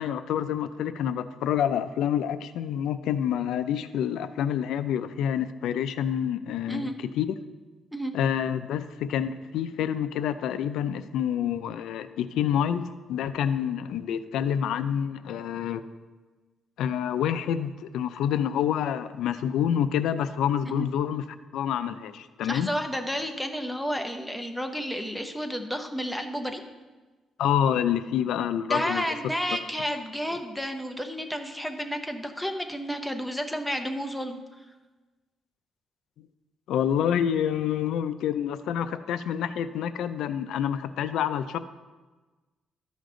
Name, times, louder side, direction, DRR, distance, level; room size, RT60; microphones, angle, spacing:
voice 1, 0.0-7.3 8.1-15.8 16.8-21.2 21.5-22.7 27.4-29.1 36.2-36.3 36.7-41.6, left 9 dB, 80° left, 12 dB, 0.4 m, -27 dB
voice 2, 22.4-26.6 28.7-34.4, equal, 5° left, 5 dB, 0.7 m, -31 dB
12.5 x 5.2 x 3.8 m, 1.2 s
cardioid pair, 135°, 0 cm